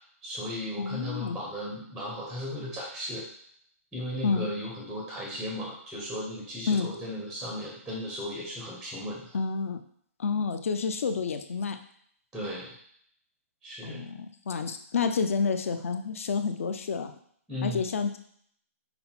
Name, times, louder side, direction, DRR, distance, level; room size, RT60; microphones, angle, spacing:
voice 1, 0.2-3.3 3.9-9.4 12.3-12.7 13.6-14.0 17.5-17.8, left 1 dB, ahead, -3 dB, 0.5 m, -36 dB
voice 2, 0.8-1.4 4.2-4.5 6.7-6.9 9.3-9.8 10.2-11.8 13.8-17.1 17.6-18.2, left 5 dB, 60° left, 8 dB, 0.5 m, -29 dB
5.4 x 2.0 x 4.3 m, 0.65 s
hypercardioid pair, 170°, 8 cm